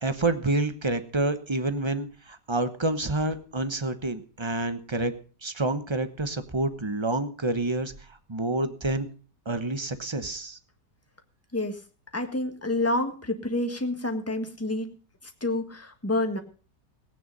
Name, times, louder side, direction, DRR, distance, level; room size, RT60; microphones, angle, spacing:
voice 1, 0.0-5.1 5.4-7.9 8.3-9.1 9.4-10.6, right 2 dB, 20° right, 10 dB, 0.8 m, -28 dB
voice 2, 12.1-14.9 15.2-16.4, left 2 dB, 10° left, 5 dB, 1.5 m, -28 dB
18.0 x 9.4 x 5.4 m, 0.39 s
omnidirectional pair, 1.8 m